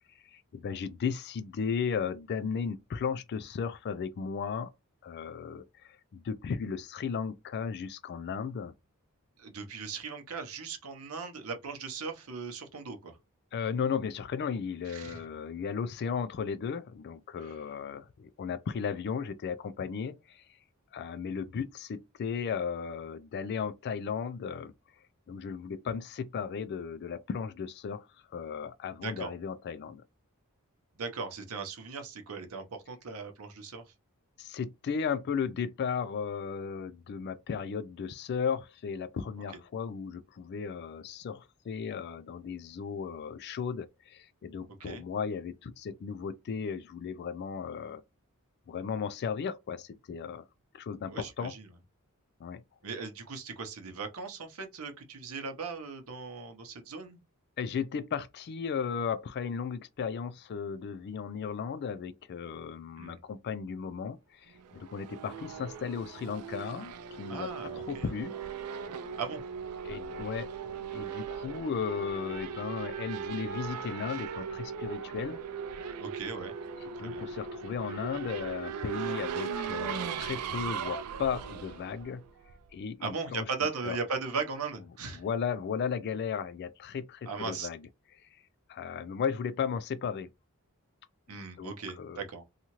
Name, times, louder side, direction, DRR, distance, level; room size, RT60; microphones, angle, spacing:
voice 1, 0.3-4.7 5.0-8.7 13.5-20.4 20.9-24.7 25.3-28.1 28.3-30.0 34.4-48.0 48.7-50.4 50.7-51.5 52.4-52.6 57.6-68.3 69.8-70.5 70.9-75.4 77.0-82.2 82.7-83.5 83.8-84.0 85.2-87.8 88.7-90.3 91.6-92.3, left 6 dB, 50° left, 0.3 m, -35 dB
voice 2, 9.4-13.2 14.9-15.2 17.4-17.5 29.0-29.3 31.0-33.8 44.8-45.0 51.1-51.7 52.8-57.2 63.0-63.2 67.3-68.1 69.2-69.4 76.0-76.5 77.0-77.3 83.0-85.2 87.3-87.7 91.3-92.4, right 4 dB, 70° right, 0.8 m, -38 dB
Race car auto racing / Accelerating revving vroom, 64.6-82.7, right 6 dB, 85° right, 0.4 m, -38 dB
2.8 x 2.4 x 2.9 m
head